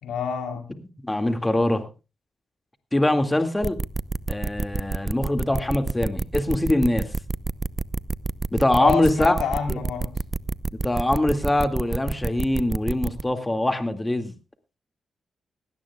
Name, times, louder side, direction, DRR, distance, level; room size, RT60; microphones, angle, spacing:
voice 1, 0.0-0.7 8.8-10.1, left 7 dB, 85° left, 5 dB, 3.6 m, -27 dB
voice 2, 1.0-1.9 2.9-3.8 4.3-7.1 8.5-9.4 9.7-9.8 10.8-14.3, left 1 dB, 15° left, 8 dB, 2.2 m, -23 dB
sound 1, 3.6-13.2, right 3 dB, 30° right, 0.7 m, -27 dB
18.0 x 17.0 x 2.4 m, 0.30 s
cardioid pair, 60°, 0 cm